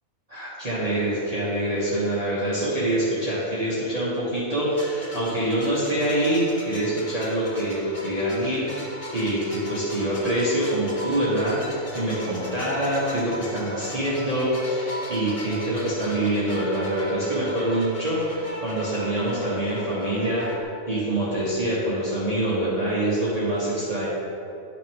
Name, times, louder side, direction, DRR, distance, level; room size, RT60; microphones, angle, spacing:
voice 1, 0.3-20.5 20.9-24.1, right 1 dB, 30° right, -10 dB, 1.4 m, -25 dB
sound 1, 4.7-20.6, equal, 25° left, 1.0 m, -37 dB
9.6 x 5.8 x 3.6 m, 2.6 s
omnidirectional pair, 1.4 m